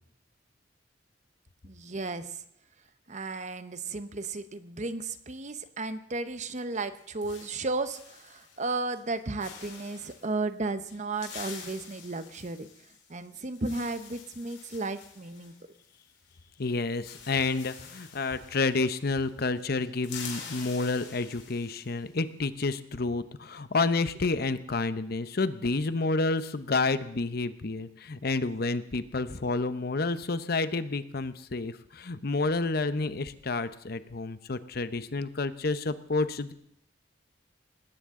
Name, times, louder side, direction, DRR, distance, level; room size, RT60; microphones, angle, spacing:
voice 1, 1.6-2.4 3.1-12.7 13.1-15.5, right 3 dB, 40° right, 11 dB, 0.9 m, -34 dB
sound 1, 6.7-8.7 8.9-9.1 9.4-10.3 10.9-16.3 16.6-16.7 16.9-19.3 19.6-22.0, left 6 dB, 80° left, 4.4 m, -47 dB
voice 2, 16.6-36.5, left 3 dB, 55° left, 13 dB, 0.8 m, -29 dB
19.5 x 17.0 x 3.7 m, 0.70 s
head